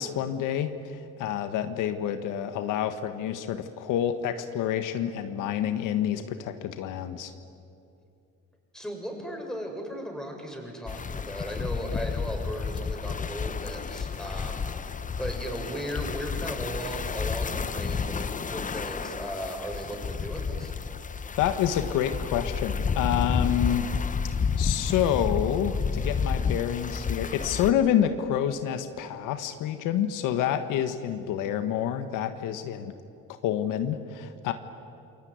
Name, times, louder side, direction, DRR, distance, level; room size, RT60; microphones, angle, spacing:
voice 1, 0.0-7.3 21.4-23.9 24.6-32.9 33.4-34.5, left 10 dB, 80° left, 9 dB, 1.5 m, -28 dB
voice 2, 8.7-20.7, equal, ahead, 1 dB, 6.7 m, -36 dB
sound 1, 10.9-27.7, left 5 dB, 25° left, 0.9 m, -31 dB
28.0 x 21.5 x 9.6 m, 2.6 s
cardioid pair, 100°, 31 cm